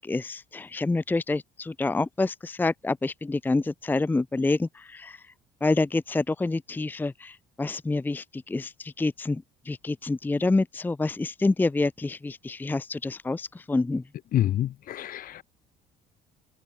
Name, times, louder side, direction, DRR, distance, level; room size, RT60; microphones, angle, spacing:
voice 1, 0.1-4.7 5.0-5.1 5.6-7.3 7.6-8.2 8.5-8.7 9.0-9.4 9.7-14.0, left 3 dB, 10° left, 0.7 m, -27 dB
voice 2, 14.3-15.4, left 12 dB, 60° left, 2.8 m, -27 dB
cardioid pair, 105°, 17 cm